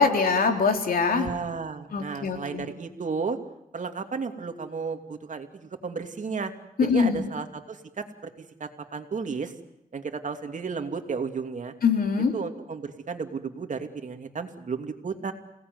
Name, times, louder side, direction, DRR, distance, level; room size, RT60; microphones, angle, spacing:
voice 1, 0.0-1.3 1.9-2.7 6.8-7.2 11.8-12.3, left 5 dB, 85° left, 4 dB, 3.6 m, -23 dB
voice 2, 1.1-3.4 3.7-6.5 6.8-8.3 8.6-9.5 9.9-11.7 12.3-15.3, right 5 dB, 60° right, 6 dB, 2.8 m, -33 dB
29.0 x 18.5 x 9.6 m, 0.81 s
wide cardioid pair, 100°, 15 cm